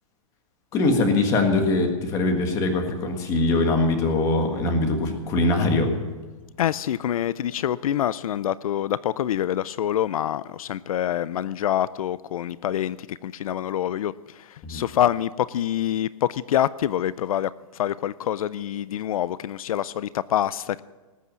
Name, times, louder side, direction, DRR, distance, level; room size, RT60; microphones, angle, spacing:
voice 1, 0.7-5.9 14.6-14.8, left 2 dB, 20° left, 5 dB, 1.6 m, -22 dB
voice 2, 6.6-20.8, left 11 dB, 85° left, 18 dB, 0.5 m, -26 dB
19.0 x 8.3 x 7.5 m, 1.3 s
hypercardioid pair, 175°, 18 cm